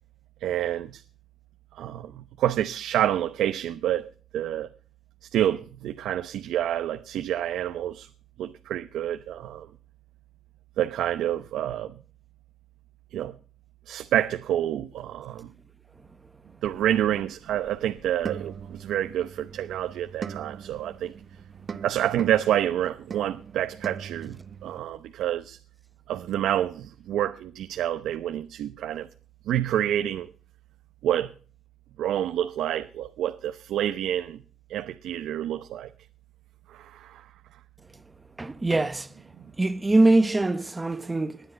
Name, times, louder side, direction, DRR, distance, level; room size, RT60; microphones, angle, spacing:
voice 1, 0.4-1.0 1.7-4.7 5.3-8.1 8.4-9.7 10.8-11.9 13.1-13.3 13.9-15.5 16.6-21.1 21.8-25.6 26.1-29.1 29.5-30.3 31.0-31.3 32.0-34.4 34.7-35.9 36.7-37.2, right 11 dB, 80° right, 0.9 m, -28 dB
sound 1, 16.6-24.8, right 6 dB, 45° right, 1.2 m, -41 dB
voice 2, 38.4-39.1 39.6-41.4, right 2 dB, 20° right, 1.1 m, -22 dB
20.0 x 10.5 x 5.3 m
cardioid pair, 90°, 0 cm